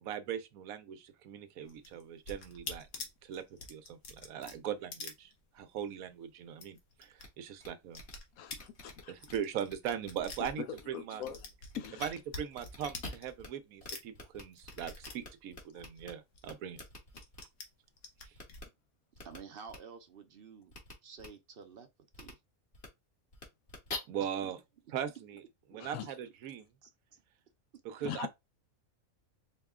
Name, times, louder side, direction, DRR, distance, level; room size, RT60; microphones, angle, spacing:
voice 1, 0.0-2.9 3.2-3.4 3.7-8.0 9.1-11.2 12.0-16.8 24.1-24.6 24.9-25.4 25.7-26.7 27.8-28.3, right 9 dB, 90° right, 1.1 m, -40 dB
sound 1, 1.6-5.9 6.1-6.2 6.5-7.3 7.5-11.0 11.3-13.6 13.9-16.4 16.8-17.6 18.0-18.6, left 3 dB, 65° left, 1.3 m, -47 dB
sound 2, 7.2-7.3 7.6-7.7 7.9-8.1 8.6-9.3 9.7-10.1 10.4-10.8 11.2-11.3 11.7-12.1 12.5-13.5 13.8-13.9 14.1-16.1 16.4-17.4 18.4-18.6 19.2-19.4 19.7-19.8 20.7-20.9 21.2-21.3 22.1-22.3 22.7-22.9 23.3-24.0, left 3 dB, 50° left, 1.5 m, -45 dB
voice 2, 8.4-9.1 10.6-11.5 11.7-12.2 25.8-26.1 28.0-28.3, left 9 dB, 85° left, 1.1 m, -42 dB
voice 3, 19.2-20.7 21.0-21.9 22.2-22.4 24.2-24.5 25.7-25.8 26.8-27.2, right 6 dB, 55° right, 0.7 m, -51 dB
4.6 x 2.2 x 3.6 m
omnidirectional pair, 1.4 m